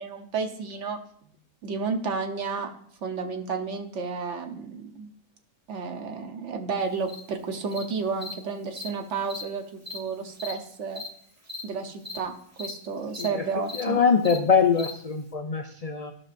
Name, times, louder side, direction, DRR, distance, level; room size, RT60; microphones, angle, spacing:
voice 1, 0.0-1.4 1.6-2.7 3.0-5.1 5.7-11.0 11.6-12.3 12.6-14.1, right 5 dB, 65° right, 4 dB, 1.1 m, -32 dB
Cricket, 7.1-7.2 7.7-7.8 8.2-8.3 8.8-8.9 9.2-9.4 9.8-10.0 10.4-10.5 10.9-11.1 11.4-11.6 12.0-12.2 12.5-12.7 13.1-13.3 13.6-13.8 14.2-14.4 14.8-14.9, left 3 dB, 15° right, 0.8 m, -37 dB
voice 2, 13.7-16.1, left 6 dB, 75° left, 5 dB, 0.3 m, -23 dB
14.0 x 5.8 x 2.5 m, 0.63 s
omnidirectional pair, 1.4 m